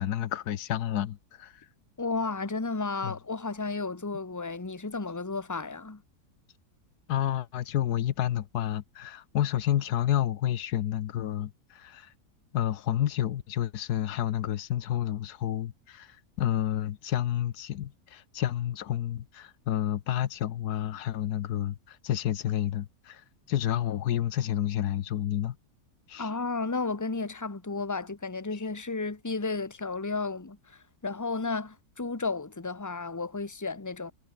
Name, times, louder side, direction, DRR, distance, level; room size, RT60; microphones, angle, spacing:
voice 1, 0.0-1.6 3.0-3.1 7.1-12.1 12.5-25.6 26.1-26.3, left 11 dB, 85° left, 1.4 m, -30 dB
voice 2, 2.0-6.0 26.2-34.1, left 3 dB, 10° left, 1.4 m, -33 dB
omnidirectional pair, 1.6 m